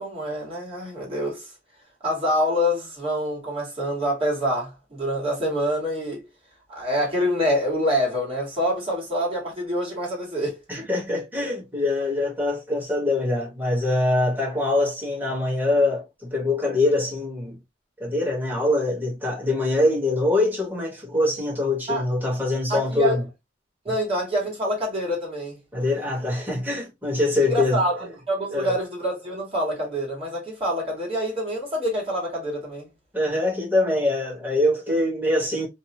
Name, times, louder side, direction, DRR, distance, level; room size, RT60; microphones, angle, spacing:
voice 1, 0.0-1.5 2.0-6.2 6.7-10.9 21.9-22.0 22.7-23.2 23.8-25.6 27.4-32.9, equal, 35° right, 1.4 m, -26 dB
voice 2, 10.7-17.6 18.0-23.3 23.9-24.0 25.7-27.8 28.5-28.7 33.1-35.7, left 2 dB, 10° right, 1.2 m, -24 dB
2.6 x 2.1 x 2.8 m
head